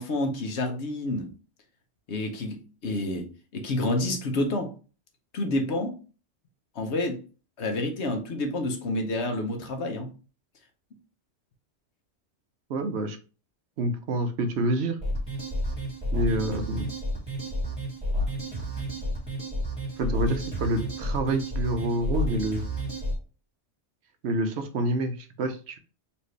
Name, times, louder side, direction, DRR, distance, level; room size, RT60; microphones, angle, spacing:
voice 1, 0.0-1.3 2.1-4.7 5.3-6.0 6.8-7.2 7.6-10.1, left 2 dB, 75° left, 5 dB, 1.1 m, -29 dB
voice 2, 12.7-13.2 13.8-15.0 16.1-16.9 20.0-22.6 24.2-25.8, right 1 dB, 70° right, 7 dB, 0.9 m, -27 dB
sound 1, 15.0-23.1, equal, 5° right, 2.1 m, -30 dB
4.3 x 2.9 x 3.2 m, 0.34 s
omnidirectional pair, 1.2 m